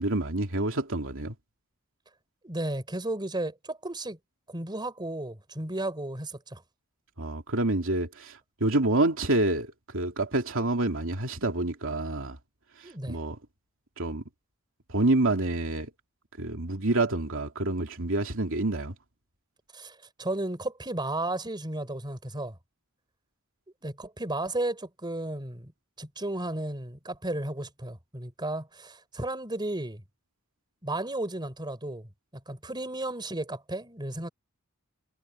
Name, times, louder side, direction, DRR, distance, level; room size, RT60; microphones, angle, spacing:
voice 1, 0.0-1.3 7.2-12.4 12.8-13.4 14.0-14.2 14.9-15.9 16.4-18.9, right 2 dB, 65° right, 2.9 m, -27 dB
voice 2, 2.4-4.2 4.5-6.6 12.8-13.2 19.7-22.6 23.8-25.7 26.0-30.0 30.8-32.1 32.5-34.3, right 1 dB, 20° right, 4.5 m, -34 dB
head